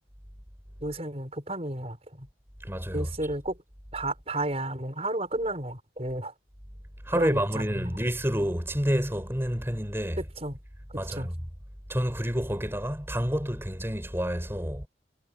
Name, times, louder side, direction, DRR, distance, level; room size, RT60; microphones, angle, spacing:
voice 1, 0.8-2.3 2.9-3.6 3.9-6.3 7.1-7.9 10.4-10.6 11.1-11.3, right 1 dB, 35° right, 6.9 m, -32 dB
voice 2, 2.6-3.3 7.0-10.3 10.9-11.5 11.9-14.9, equal, 15° right, 7.6 m, -29 dB
head